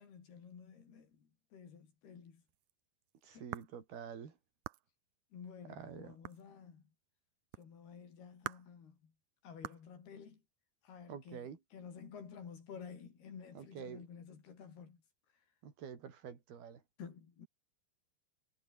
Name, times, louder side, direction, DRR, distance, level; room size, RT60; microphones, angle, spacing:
voice 1, 0.0-2.4 3.3-3.5 5.3-6.8 7.6-9.1 9.4-10.4 10.8-15.0 17.0-17.5, left 6 dB, 75° left, 6.1 m, -52 dB
sound 1, 2.2-2.3 2.5-4.0 4.6-4.9 6.2-6.7 7.5-7.7 8.4-8.7 9.6-9.9, right 16 dB, 85° right, 1.7 m, -45 dB
voice 2, 3.2-4.3 5.7-6.2 11.1-11.6 13.6-14.0 15.6-16.8, right 7 dB, 70° right, 5.6 m, -47 dB
omnidirectional pair, 4.6 m